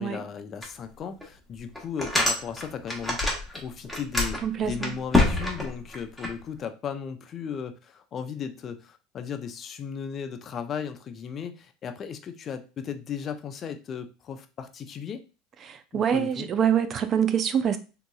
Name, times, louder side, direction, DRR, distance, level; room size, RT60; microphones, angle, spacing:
voice 1, 0.0-3.2 3.5-15.2 15.9-16.5, left 7 dB, 40° left, 0.5 m, -36 dB
sound 1, 0.6-0.7 1.2-1.3 1.8-3.6 3.8-6.3, left 2 dB, ahead, 1.1 m, -25 dB
voice 2, 4.4-4.9 15.7-17.8, right 8 dB, 40° right, 0.4 m, -25 dB
3.6 x 2.9 x 2.3 m
supercardioid pair, 105°, 0 cm